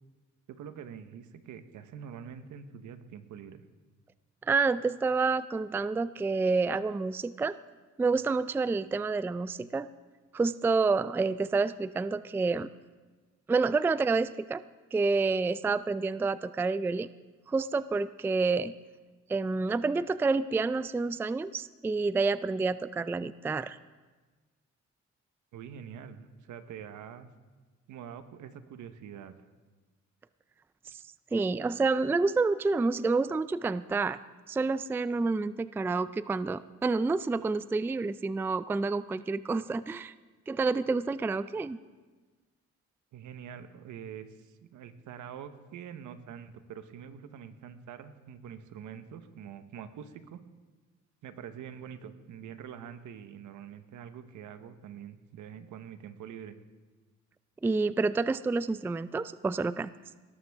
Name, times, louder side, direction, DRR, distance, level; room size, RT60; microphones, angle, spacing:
voice 1, 0.5-3.6 25.5-27.3 27.9-29.3 43.1-50.4 51.2-56.6, right 8 dB, 80° right, 10 dB, 1.1 m, -45 dB
voice 2, 4.4-7.6 8.0-9.9 10.3-12.7 13.5-14.6 14.9-17.1 17.5-18.7 19.3-23.8 31.3-34.2 34.5-40.1 40.5-41.8 57.6-59.9, right 4 dB, 10° right, 15 dB, 0.3 m, -28 dB
18.5 x 13.0 x 3.6 m, 1.3 s
cardioid pair, 90°, 30 cm